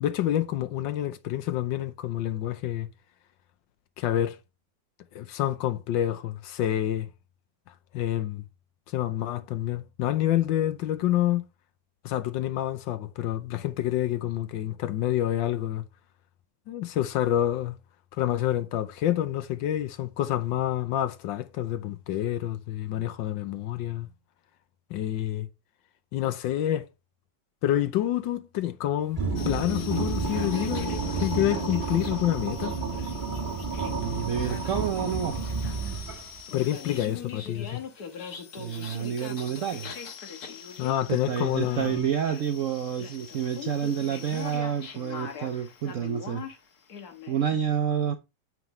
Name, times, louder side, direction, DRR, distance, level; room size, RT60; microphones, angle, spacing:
voice 1, 0.0-2.9 4.0-4.4 5.1-7.1 7.9-8.4 8.9-11.4 12.0-15.8 16.7-17.8 18.2-24.1 24.9-25.5 26.1-26.9 27.6-32.8 36.5-37.8 40.8-42.1, left 12 dB, 80° left, 1.4 m, -28 dB
sound 1, 29.1-36.4, right 3 dB, 25° right, 1.6 m, -30 dB
sound 2, 29.4-47.6, left 7 dB, 55° left, 1.7 m, -42 dB
voice 2, 34.0-35.4 38.6-39.9 41.1-46.4 47.3-48.1, right 8 dB, 70° right, 0.7 m, -29 dB
9.2 x 6.2 x 3.1 m
omnidirectional pair, 2.0 m